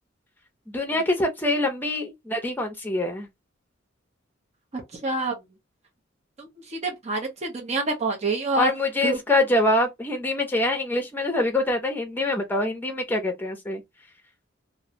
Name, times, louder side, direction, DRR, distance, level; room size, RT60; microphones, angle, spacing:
voice 1, 0.7-3.3 8.6-13.8, left 1 dB, 10° left, 0.7 m, -25 dB
voice 2, 4.7-5.4 6.4-8.7 9.0-9.2, right 2 dB, 35° right, 0.7 m, -27 dB
2.5 x 2.2 x 2.8 m
head